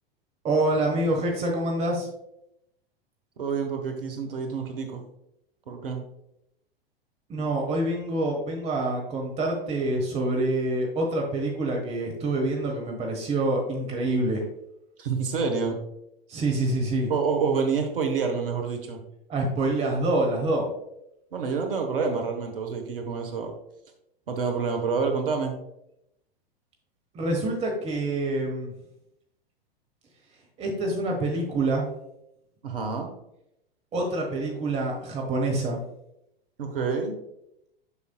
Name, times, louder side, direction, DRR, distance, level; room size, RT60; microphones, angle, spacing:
voice 1, 0.4-2.1 7.3-14.4 16.3-17.1 19.3-20.7 27.1-28.7 30.6-31.9 33.9-35.8, right 2 dB, 20° right, 0 dB, 1.3 m, -26 dB
voice 2, 3.4-5.0 5.7-6.0 15.0-15.8 17.1-19.0 21.3-23.5 24.3-25.5 32.6-33.1 36.6-37.2, right 5 dB, 65° right, 4 dB, 1.2 m, -28 dB
7.1 x 6.8 x 2.3 m, 0.81 s
figure-of-eight pair, 95°, 30 cm